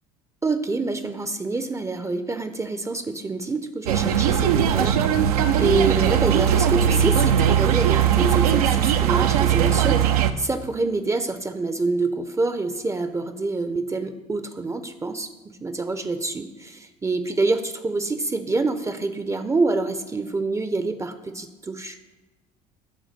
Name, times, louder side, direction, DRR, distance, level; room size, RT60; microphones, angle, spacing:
voice 1, 0.4-5.1 5.6-10.0 10.4-22.0, right 3 dB, 15° right, 10 dB, 0.5 m, -26 dB
sound 1, 3.9-10.3, right 9 dB, 80° right, 0.5 m, -19 dB
8.0 x 3.7 x 6.5 m, 1.2 s
hypercardioid pair, 65°, 19 cm